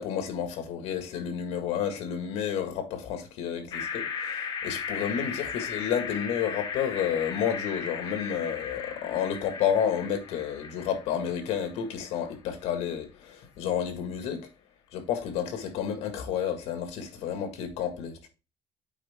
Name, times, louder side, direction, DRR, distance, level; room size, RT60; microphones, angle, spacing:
voice 1, 0.0-14.5 14.9-18.3, left 8 dB, 85° left, 1.8 m, -31 dB
sound 1, 3.7-11.9, left 6 dB, 45° left, 1.3 m, -36 dB
8.3 x 4.8 x 3.5 m
cardioid pair, 160°, 11 cm